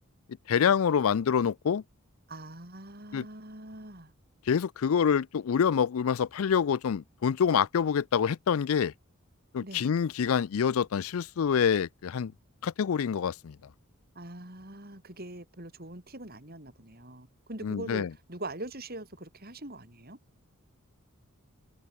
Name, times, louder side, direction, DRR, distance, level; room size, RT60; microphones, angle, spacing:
voice 1, 0.5-1.8 3.1-3.2 4.5-8.9 9.5-12.3 12.6-13.6 17.6-18.1, left 7 dB, 75° left, 0.4 m, -26 dB
voice 2, 2.3-4.1 9.6-9.9 14.1-20.2, right 1 dB, 45° right, 4.9 m, -43 dB
open air
head